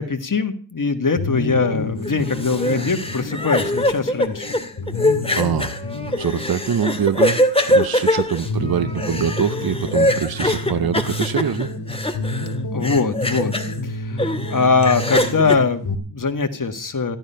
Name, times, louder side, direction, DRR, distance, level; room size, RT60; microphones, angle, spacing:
voice 1, 0.0-4.6 12.7-13.5 13.8-17.2, left 4 dB, 45° left, 8 dB, 1.8 m, -22 dB
sound 1, 1.2-15.9, left 2 dB, 65° left, 2.1 m, -30 dB
sound 2, 2.0-12.5 12.8-13.7 14.2-15.6, left 1 dB, 15° left, 1.9 m, -22 dB
voice 2, 5.3-5.7 6.2-7.4 7.7-11.7, right 8 dB, 55° right, 12 dB, 0.9 m, -23 dB
14.5 x 12.0 x 5.7 m, 0.41 s
wide cardioid pair, 90°, 44 cm